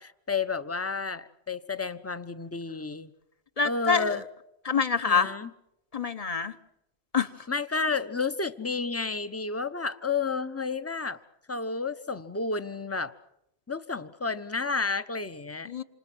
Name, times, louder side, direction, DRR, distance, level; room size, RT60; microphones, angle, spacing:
voice 1, 0.0-3.1 3.6-4.2 5.1-5.5 7.5-11.2 11.5-13.1 13.7-15.7, left 4 dB, 15° left, 12 dB, 0.9 m, -31 dB
voice 2, 3.6-4.2 4.6-5.3 5.9-6.5 7.1-7.3 15.7-15.8, left 5 dB, 35° left, 11 dB, 1.2 m, -26 dB
28.0 x 27.5 x 6.3 m, 0.84 s
omnidirectional pair, 1.1 m